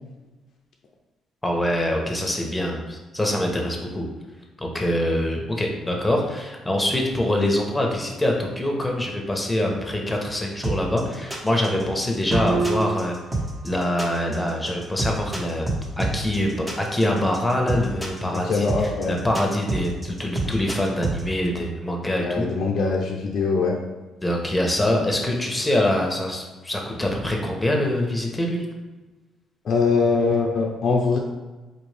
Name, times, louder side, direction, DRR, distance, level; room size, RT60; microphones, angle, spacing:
voice 1, 1.4-4.0 4.6-13.1 13.6-15.7 16.0-22.5 24.2-28.6, left 1 dB, 15° left, 1 dB, 1.0 m, -24 dB
sound 1, 10.6-21.2, right 2 dB, 20° right, 1.1 m, -28 dB
sound 2, 12.3-13.4, right 3 dB, 65° right, 0.8 m, -26 dB
voice 2, 18.4-19.2 22.2-23.8 29.6-31.2, left 4 dB, 60° left, -1 dB, 0.5 m, -22 dB
4.3 x 2.5 x 3.3 m, 1.2 s
supercardioid pair, 60°, 0 cm